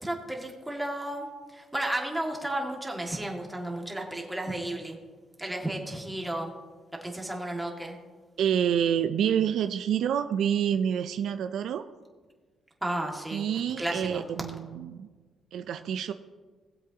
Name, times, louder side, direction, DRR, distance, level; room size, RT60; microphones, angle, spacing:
voice 1, 0.0-5.0 5.4-6.5 7.0-8.0 12.8-13.5 13.8-14.2, right 1 dB, 10° right, 0 dB, 2.0 m, -33 dB
voice 2, 8.4-11.9 13.3-15.1 15.5-16.1, right 9 dB, 75° right, 9 dB, 0.4 m, -27 dB
19.0 x 7.8 x 2.9 m, 1.4 s
cardioid pair, 90°, 0 cm